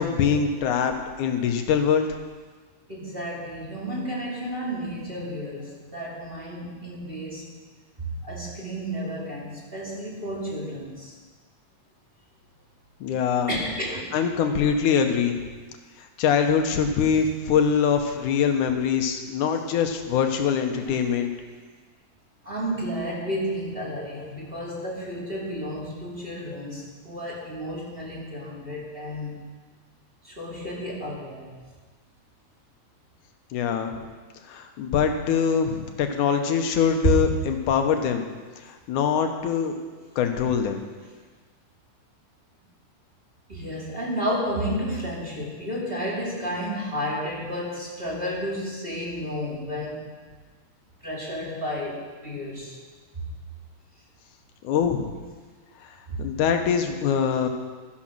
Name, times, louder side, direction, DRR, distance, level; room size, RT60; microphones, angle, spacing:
voice 1, 0.0-2.1 13.0-13.5 14.1-15.5 16.0-21.3 33.5-34.0 34.5-38.3 38.6-39.8 40.2-40.8 54.6-55.1 55.8-57.5, left 7 dB, 80° left, 5 dB, 2.6 m, -23 dB
voice 2, 2.9-7.4 8.0-11.1 13.5-14.1 20.9-21.0 22.4-29.4 30.2-31.6 37.0-37.1 43.5-50.0 51.0-52.8 56.1-56.2, equal, 20° right, -4 dB, 2.3 m, -31 dB
13.0 x 10.5 x 6.2 m, 1.4 s
omnidirectional pair, 3.5 m